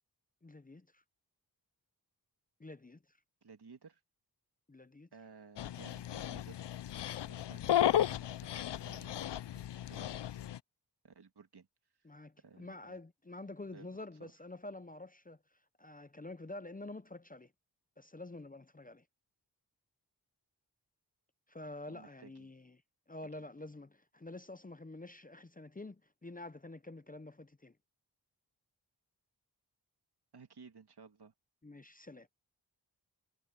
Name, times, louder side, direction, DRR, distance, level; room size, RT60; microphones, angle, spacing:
voice 1, 0.4-1.0 2.6-3.0 4.7-5.1 12.0-15.4 15.8-17.5 18.0-19.0 21.5-22.8 23.1-27.7 31.6-32.3, left 2 dB, 20° left, 0.7 m, -48 dB
voice 2, 3.4-4.0 5.1-6.6 7.3-10.4 11.0-11.7 12.4-13.0 13.7-13.9 14.2-14.3 21.9-22.5 30.3-31.3, right 5 dB, 70° right, 2.2 m, -57 dB
Dog, 5.6-10.6, left 11 dB, 85° left, 0.5 m, -34 dB
wide cardioid pair, 75°, 41 cm